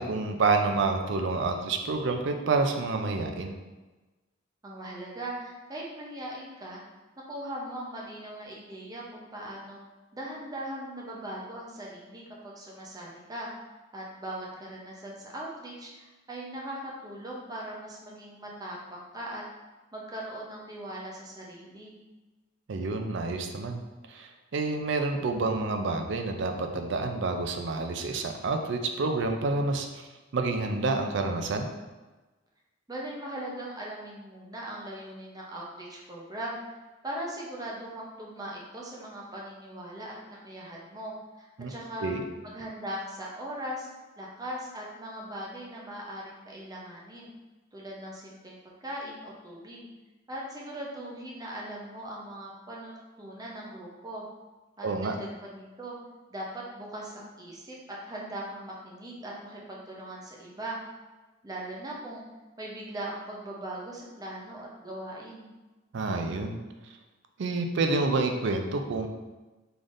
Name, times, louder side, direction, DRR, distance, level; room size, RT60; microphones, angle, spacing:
voice 1, 0.0-3.5 22.7-23.8 24.1-29.9 30.3-31.7 41.6-41.7 42.0-42.2 54.8-55.2 65.9-66.6 67.4-69.1, right 3 dB, 60° right, 5 dB, 0.4 m, -28 dB
voice 2, 4.6-6.8 7.3-9.8 10.1-13.5 13.9-19.4 19.9-22.0 32.9-36.8 37.0-42.1 42.4-43.9 44.2-47.3 47.7-49.9 50.3-54.2 54.8-56.0 56.3-57.8 58.0-60.8 61.4-62.2 62.6-65.5, right 1 dB, 20° right, -3 dB, 0.6 m, -40 dB
3.9 x 3.3 x 2.5 m, 1.2 s
head